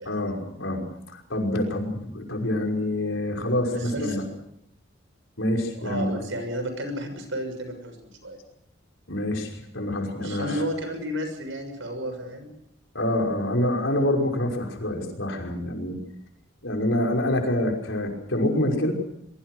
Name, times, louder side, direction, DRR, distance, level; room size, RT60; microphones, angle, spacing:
voice 1, 0.1-4.2 5.4-6.2 9.1-10.6 12.9-16.0 16.6-18.9, left 1 dB, 70° left, 2 dB, 5.6 m, -26 dB
voice 2, 3.7-4.2 5.8-8.4 10.2-12.5, equal, 70° right, 8 dB, 6.7 m, -32 dB
24.5 x 23.0 x 6.4 m, 0.73 s
head